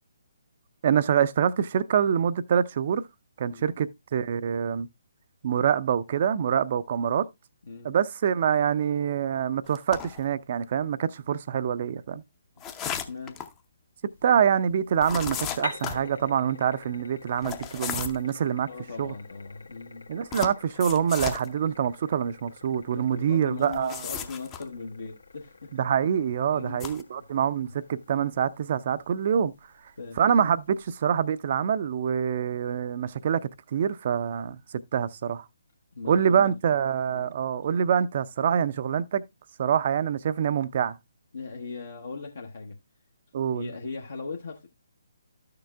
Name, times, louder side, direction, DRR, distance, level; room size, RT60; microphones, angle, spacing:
voice 1, 0.8-3.1 3.4-4.9 5.4-7.3 7.8-12.2 14.2-18.7 19.0-19.1 20.1-24.0 25.7-29.5 30.2-34.6 34.9-35.5 36.1-39.2 39.6-41.0 43.3-43.7, right 8 dB, 40° right, 0.5 m, -25 dB
sound 1, 9.8-10.2 12.6-13.5 15.0-16.0 17.4-18.3 20.3-21.5 23.6-24.6 26.7-27.0, left 8 dB, 20° left, 0.7 m, -34 dB
voice 2, 12.8-13.4 18.7-20.1 22.9-25.7 26.5-26.9 30.0-30.2 35.9-36.6 37.1-37.3 41.3-42.8 43.5-44.7, left 4 dB, 60° left, 1.0 m, -39 dB
sound 2, 14.1-31.0, left 4 dB, 75° left, 1.5 m, -48 dB
13.0 x 6.7 x 2.2 m
figure-of-eight pair, 135°, 0 cm